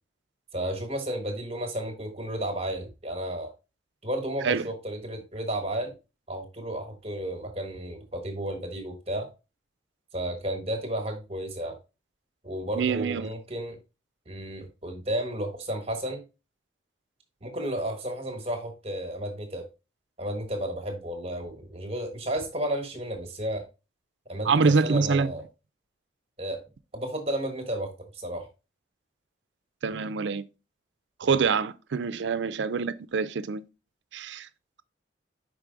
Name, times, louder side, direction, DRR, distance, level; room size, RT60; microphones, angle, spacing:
voice 1, 0.5-3.5 4.0-5.9 6.3-9.3 10.1-11.8 12.4-13.8 14.3-16.2 17.4-19.7 20.2-23.6 24.3-25.4 26.4-26.6 26.9-28.5, right 1 dB, 35° right, 1.2 m, -32 dB
voice 2, 12.8-13.3 24.4-25.3 29.8-30.4 31.2-33.6 34.1-34.5, right 5 dB, 70° right, 0.4 m, -25 dB
5.2 x 4.8 x 3.8 m
head